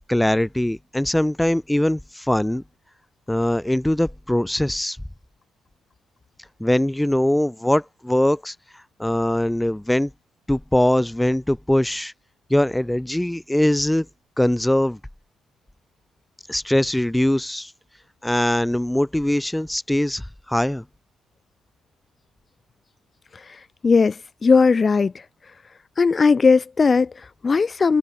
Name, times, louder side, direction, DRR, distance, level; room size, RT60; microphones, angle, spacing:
voice 1, 0.1-2.6 3.3-5.0 6.6-8.5 9.0-10.1 10.5-12.1 12.5-14.1 14.4-15.0 16.5-17.7 18.2-20.8, left 1 dB, 5° left, 1.5 m, -21 dB
voice 2, 23.3-25.2 26.0-28.0, left 4 dB, 35° left, 1.0 m, -18 dB
open air
cardioid pair, 90°, 0 cm